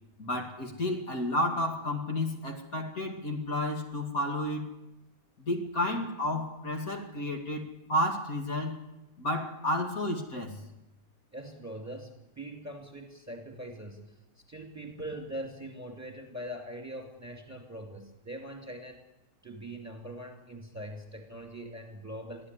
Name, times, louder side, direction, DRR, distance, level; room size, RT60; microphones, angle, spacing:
voice 1, 0.2-4.7 5.4-8.8 9.2-10.6, left 1 dB, 55° left, 3 dB, 2.8 m, -31 dB
voice 2, 11.3-14.2 14.5-19.0 19.4-22.5, right 1 dB, 10° right, 4 dB, 2.7 m, -42 dB
23.5 x 14.5 x 9.8 m, 0.95 s
omnidirectional pair, 1.8 m